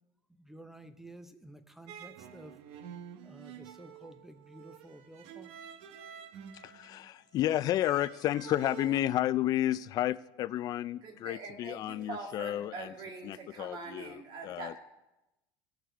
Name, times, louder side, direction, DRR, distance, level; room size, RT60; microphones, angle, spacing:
voice 1, 0.4-2.6 3.2-5.5, right 1 dB, 5° right, 10 dB, 0.7 m, -51 dB
sound 1, 1.9-9.0, right 9 dB, 70° right, 0.8 m, -49 dB
voice 2, 6.5-12.9 13.2-14.8, left 13 dB, 40° left, 17 dB, 0.3 m, -32 dB
voice 3, 11.0-14.8, right 3 dB, 50° right, 2 dB, 2.2 m, -43 dB
17.0 x 6.5 x 4.5 m, 0.94 s
cardioid pair, 135°, 10 cm